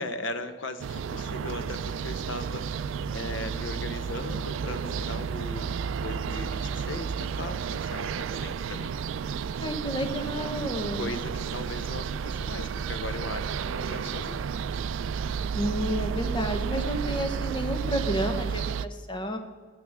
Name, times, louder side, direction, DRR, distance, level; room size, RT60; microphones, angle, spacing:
voice 1, 0.0-8.9 10.9-14.5 16.9-17.5, left 2 dB, 75° left, 10 dB, 0.8 m, -38 dB
sound 1, 0.8-18.9, right 6 dB, 80° right, 0.3 m, -32 dB
voice 2, 9.6-11.1 15.5-19.4, equal, 25° left, 5 dB, 0.8 m, -31 dB
15.0 x 10.0 x 3.5 m, 1.5 s
head